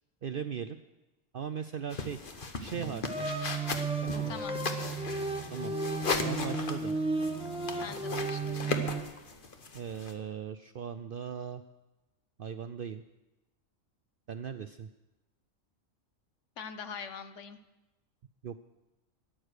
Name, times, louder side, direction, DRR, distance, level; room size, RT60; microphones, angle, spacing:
voice 1, 0.2-0.8 1.3-2.3 2.6-3.3 4.0-4.4 5.5-5.7 6.2-7.0 9.7-11.6 12.4-13.0 14.3-14.9 18.4-18.6, right 7 dB, 60° right, 9 dB, 0.6 m, -38 dB
sound 1, 1.9-10.1, left 4 dB, 40° left, 1.2 m, -37 dB
sound 2, 2.7-9.0, right 3 dB, 5° right, 0.9 m, -34 dB
voice 2, 4.3-4.6 7.8-8.9 16.6-17.6, left 6 dB, 65° left, 10 dB, 1.1 m, -43 dB
13.5 x 10.0 x 6.5 m, 1.0 s
omnidirectional pair, 1.4 m